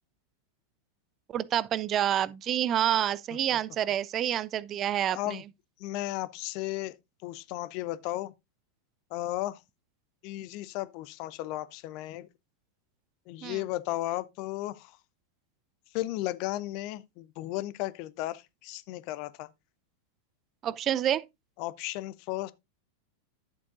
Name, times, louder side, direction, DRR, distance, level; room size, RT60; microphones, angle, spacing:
voice 1, 1.3-5.4 13.4-13.6 20.6-21.2, right 11 dB, 30° right, 0.4 m, -28 dB
voice 2, 5.1-5.4 5.8-6.9 7.2-8.3 9.1-9.6 10.2-12.3 13.3-15.0 15.9-19.5 21.6-22.5, left 16 dB, 45° left, 0.6 m, -34 dB
10.5 x 7.1 x 2.6 m
figure-of-eight pair, 90°, 0 cm